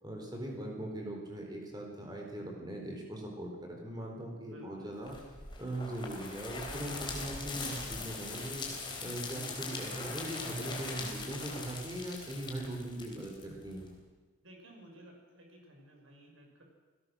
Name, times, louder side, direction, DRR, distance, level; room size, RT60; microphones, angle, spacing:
voice 1, 0.0-5.2 5.6-8.7 9.0-13.9, right 1 dB, 20° right, 1 dB, 4.3 m, -40 dB
voice 2, 4.5-4.9 9.2-9.5 14.4-16.6, right 1 dB, 70° right, 1 dB, 5.9 m, -54 dB
sound 1, 5.1-13.9, left 3 dB, 25° left, 3.8 m, -41 dB
28.0 x 17.5 x 6.5 m, 1.3 s
head